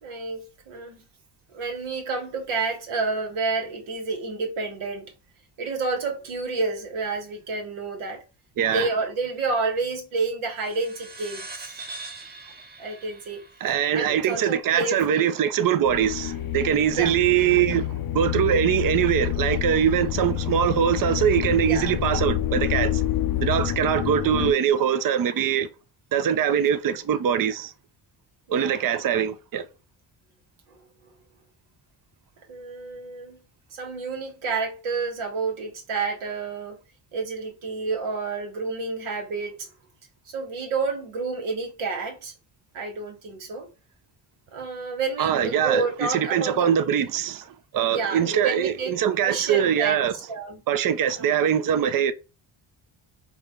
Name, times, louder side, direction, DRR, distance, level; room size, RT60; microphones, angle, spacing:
voice 1, 0.0-1.0 1.5-5.1 5.6-8.2 8.7-11.8 12.8-13.4 13.9-15.3 16.9-17.2 21.6-22.0 23.9-24.2 28.5-29.0 30.7-30.8 32.5-33.4 33.7-36.8 37.1-39.7 40.2-42.3 42.7-43.7 44.5-46.7 47.9-48.9 49.2-50.6 51.2-51.3, right 4 dB, 75° right, 1.3 m, -30 dB
voice 2, 8.6-8.9 13.6-23.0 23.4-25.7 26.1-27.7 28.5-29.7 45.2-50.1 50.7-52.1, right 9 dB, 45° right, 0.6 m, -23 dB
sound 1, 10.6-15.5, right 3 dB, 20° right, 0.9 m, -43 dB
sound 2, 15.8-24.5, left 12 dB, 50° left, 0.5 m, -28 dB
3.7 x 2.2 x 3.5 m
supercardioid pair, 60°, 49 cm